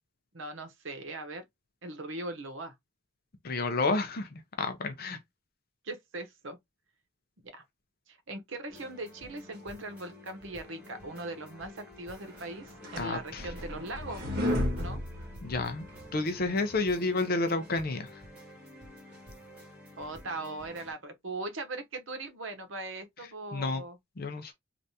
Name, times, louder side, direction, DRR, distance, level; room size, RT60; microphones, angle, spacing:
voice 1, 0.3-1.4 1.8-2.7 5.8-6.6 7.4-7.6 8.1-14.2 14.8-15.0 20.0-24.0, right 2 dB, 80° right, 0.9 m, -40 dB
voice 2, 3.4-5.2 13.0-13.5 15.4-15.8 16.1-18.1 23.5-23.8 24.2-24.5, left 3 dB, 50° left, 0.6 m, -30 dB
sound 1, 8.7-20.9, left 1 dB, 5° right, 2.1 m, -51 dB
sound 2, 12.4-16.0, left 1 dB, 55° right, 1.5 m, -33 dB
3.4 x 2.5 x 2.7 m
head